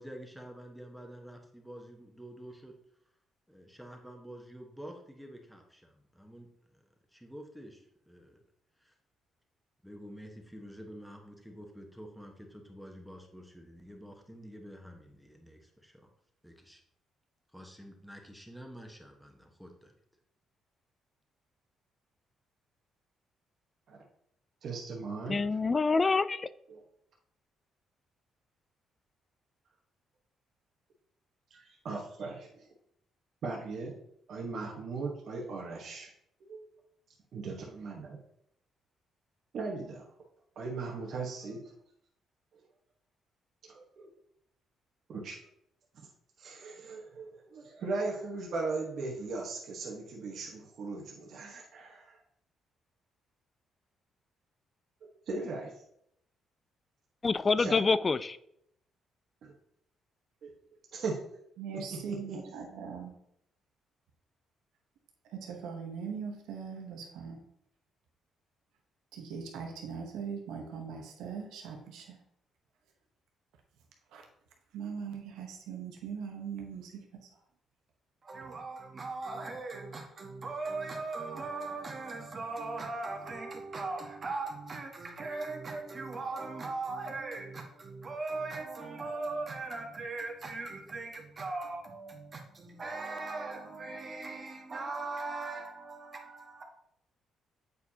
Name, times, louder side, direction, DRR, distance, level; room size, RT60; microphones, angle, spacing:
voice 1, 0.0-2.7 3.5-6.5 6.7-6.8 7.1-8.4 8.8-8.9 9.8-16.1 16.4-16.8 17.5-19.9, equal, ahead, 1.2 m, -49 dB
voice 2, 24.6-25.5 26.7-26.8 31.5-32.7 33.4-33.9 34.3-36.1 36.5-36.6 37.3-38.2 39.5-40.1 40.6-41.6 43.6-44.1 45.1-45.4 45.9-46.1 46.4-52.2 55.3-55.8 57.6-57.8 59.4-59.5 60.4-60.5 60.9-61.2 61.7-62.4, right 3 dB, 65° right, 1.1 m, -38 dB
voice 3, 25.3-26.5 57.2-58.4, left 4 dB, 30° left, 0.3 m, -26 dB
voice 4, 61.6-63.2 65.3-67.4 69.1-72.2 74.1-74.2 74.7-77.3, right 6 dB, 90° right, 1.0 m, -40 dB
voice 5, 78.2-96.6, right 3 dB, 40° right, 1.3 m, -39 dB
8.1 x 4.6 x 2.8 m
cardioid pair, 90°, 0 cm